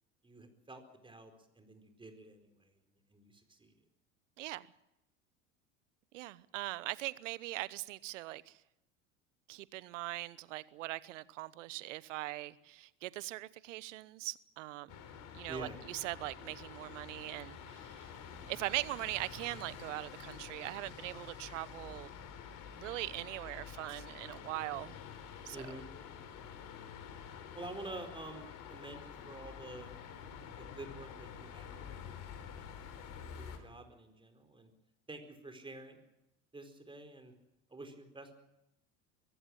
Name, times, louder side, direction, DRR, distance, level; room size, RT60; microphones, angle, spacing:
voice 1, 0.2-3.7 15.5-15.8 25.5-25.9 27.5-30.0 30.6-32.2 32.6-32.8 33.4-34.7 35.1-36.0 36.5-37.3 37.7-38.3, right 2 dB, 15° right, 4.4 m, -49 dB
voice 2, 6.1-8.6 9.5-15.0 15.3-18.1 18.5-22.1 22.8-25.0 25.4-25.8, right 18 dB, 70° right, 1.0 m, -41 dB
sound 1, 14.9-33.6, left 7 dB, 55° left, 3.8 m, -49 dB
23.5 x 15.5 x 8.8 m
hypercardioid pair, 80°, 38 cm